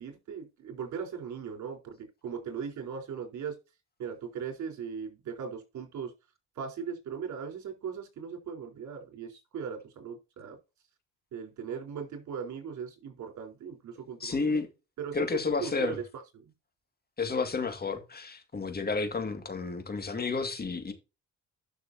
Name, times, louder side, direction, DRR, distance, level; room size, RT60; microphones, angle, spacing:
voice 1, 0.0-2.0 2.2-3.5 4.0-6.1 6.6-10.6 11.3-14.6 15.0-15.2 15.6-16.0, right 7 dB, 70° right, 4.1 m, -38 dB
voice 2, 14.2-14.7 15.1-16.0 17.2-20.9, left 4 dB, 30° left, 2.2 m, -31 dB
12.0 x 6.2 x 2.8 m
cardioid pair, 90°, 30 cm